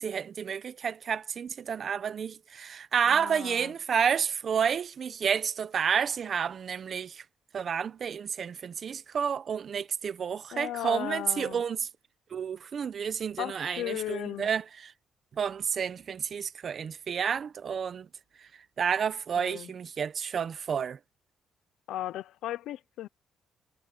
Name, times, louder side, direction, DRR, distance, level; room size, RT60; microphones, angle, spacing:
voice 1, 0.0-7.2 7.5-11.9 12.3-14.9 15.4-18.1 18.8-21.0, right 7 dB, 50° right, 1.1 m, -30 dB
voice 2, 3.1-3.7 10.5-11.6 13.4-14.5 19.4-19.7 21.9-23.1, left 13 dB, 85° left, 0.9 m, -36 dB
cardioid pair, 90°, 0 cm